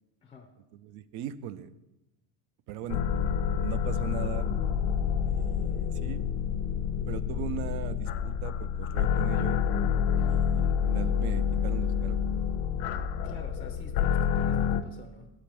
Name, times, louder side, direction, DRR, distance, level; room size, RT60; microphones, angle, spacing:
voice 1, 0.2-0.5 10.1-10.4 13.2-15.3, left 4 dB, 15° left, 4 dB, 0.4 m, -48 dB
voice 2, 0.7-1.7 2.7-3.1 3.6-4.5 5.3-6.2 7.1-9.6 10.3-12.2, right 10 dB, 60° right, 15 dB, 0.6 m, -39 dB
sound 1, 2.9-14.8, left 7 dB, 85° left, 0.7 m, -28 dB
8.5 x 5.1 x 7.4 m, 1.0 s
cardioid pair, 150°, 43 cm